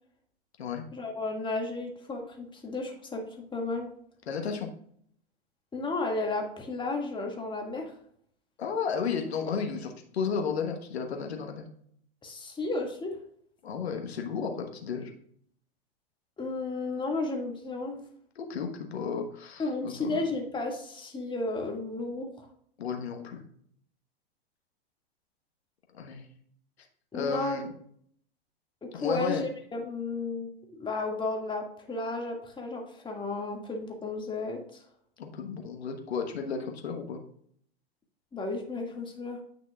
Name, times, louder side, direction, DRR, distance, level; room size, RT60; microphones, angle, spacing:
voice 1, 0.9-3.2 3.5-3.9 5.7-7.9 12.2-13.2 16.4-18.0 19.6-22.3 27.1-27.6 28.9-30.5 30.8-34.8 38.3-39.4, left 3 dB, 15° left, 1 dB, 1.9 m, -33 dB
voice 2, 4.3-4.7 8.6-11.6 13.6-15.1 18.3-20.2 22.8-23.4 25.9-26.3 27.1-27.7 28.9-29.4 35.2-37.2, left 6 dB, 85° left, 4 dB, 1.2 m, -33 dB
9.0 x 6.1 x 2.3 m, 0.63 s
hypercardioid pair, 105°, 31 cm